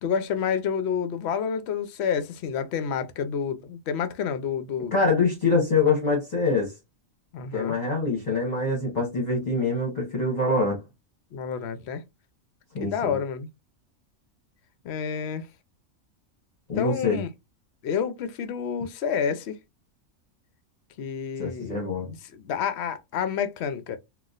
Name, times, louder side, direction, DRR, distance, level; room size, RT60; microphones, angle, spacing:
voice 1, 0.0-4.9 7.3-7.7 11.3-12.0 12.8-13.5 14.8-15.5 16.8-17.3 17.8-19.6 21.0-24.0, left 7 dB, 65° left, 0.7 m, -29 dB
voice 2, 4.9-6.7 7.5-10.8 12.7-13.2 16.7-17.2 21.4-22.1, left 3 dB, 35° left, 1.0 m, -24 dB
4.0 x 2.4 x 2.4 m
omnidirectional pair, 1.4 m